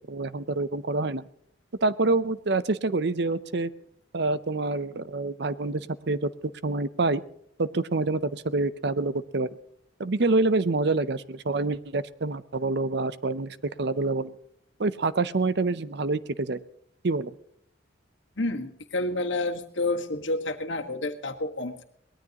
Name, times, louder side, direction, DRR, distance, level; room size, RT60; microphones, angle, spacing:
voice 1, 0.1-1.2 1.8-3.7 4.1-7.2 7.6-9.5 10.0-14.3 14.8-16.6 17.0-17.3, right 3 dB, 60° right, 15 dB, 0.7 m, -27 dB
voice 2, 18.4-21.8, left 2 dB, 80° left, 4 dB, 1.6 m, -29 dB
23.0 x 19.0 x 3.0 m, 0.69 s
head